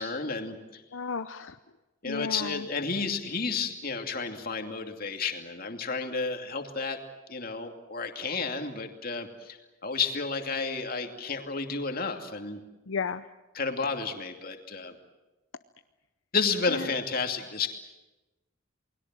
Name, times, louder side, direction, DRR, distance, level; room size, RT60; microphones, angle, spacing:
voice 1, 0.0-0.8 2.0-7.0 7.3-12.6 13.5-15.0 16.3-17.7, left 4 dB, 45° left, 4 dB, 2.6 m, -31 dB
voice 2, 0.9-1.6 2.1-2.6 12.9-13.2 16.7-16.8, left 5 dB, 75° left, 9 dB, 0.7 m, -33 dB
29.0 x 21.0 x 7.6 m, 1.1 s
head